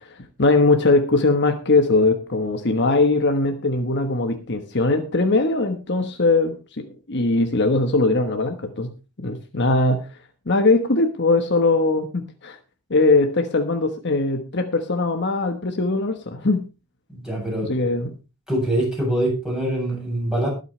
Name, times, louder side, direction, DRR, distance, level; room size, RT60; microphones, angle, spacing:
voice 1, 0.1-8.9 9.2-10.0 10.5-12.6 12.9-16.7 17.6-18.1, left 3 dB, 50° left, 6 dB, 1.3 m, -20 dB
voice 2, 17.2-17.7 18.5-20.5, right 1 dB, 5° right, -2 dB, 7.9 m, -24 dB
21.0 x 8.1 x 3.3 m, 0.31 s
head